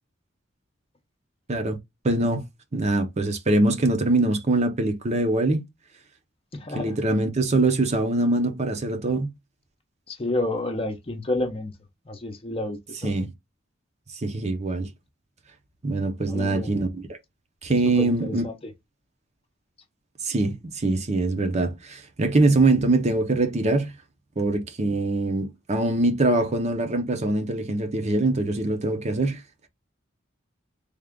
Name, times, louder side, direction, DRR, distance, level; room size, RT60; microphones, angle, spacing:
voice 1, 2.0-2.4 2.7-5.6 6.7-9.3 13.0-13.3 14.1-14.9 15.8-17.0 17.6-18.4 20.2-23.9 24.4-29.4, right 2 dB, 35° right, 0.7 m, -23 dB
voice 2, 6.5-6.9 10.1-11.7 12.1-13.1 16.3-16.7 17.8-18.5, left 2 dB, 30° left, 0.7 m, -30 dB
3.5 x 2.4 x 3.6 m
head